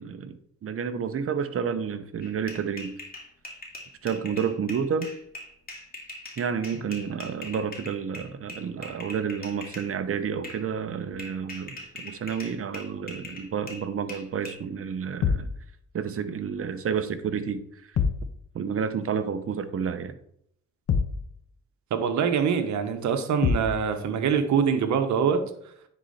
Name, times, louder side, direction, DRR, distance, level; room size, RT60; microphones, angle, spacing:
voice 1, 0.0-2.9 4.0-5.1 6.4-15.5 15.9-17.8 18.5-20.2, right 7 dB, 50° right, 10 dB, 0.9 m, -30 dB
sound 1, 2.2-9.9 10.4-10.6 11.2-14.6, left 1 dB, 30° left, 2.6 m, -42 dB
sound 2, 15.2-15.6 18.0-18.3 20.9-21.3 23.4-23.8, left 6 dB, 55° left, 1.1 m, -25 dB
voice 2, 21.9-25.4, right 7 dB, 70° right, 8 dB, 1.2 m, -24 dB
10.0 x 4.2 x 4.2 m, 0.69 s
cardioid pair, 90°, 30 cm